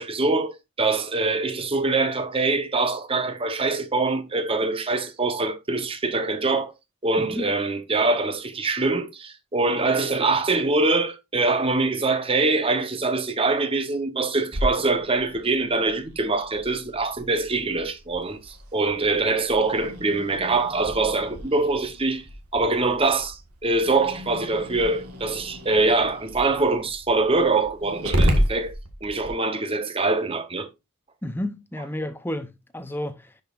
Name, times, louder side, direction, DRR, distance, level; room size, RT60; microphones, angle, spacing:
voice 1, 0.0-6.7 7.0-22.2 22.5-28.7 29.0-30.7, right 3 dB, 25° right, 0.8 m, -24 dB
voice 2, 7.2-7.5 31.2-33.4, left 1 dB, 10° left, 0.6 m, -32 dB
Growling, 14.5-29.3, equal, 85° right, 1.6 m, -32 dB
10.5 x 5.3 x 2.5 m
head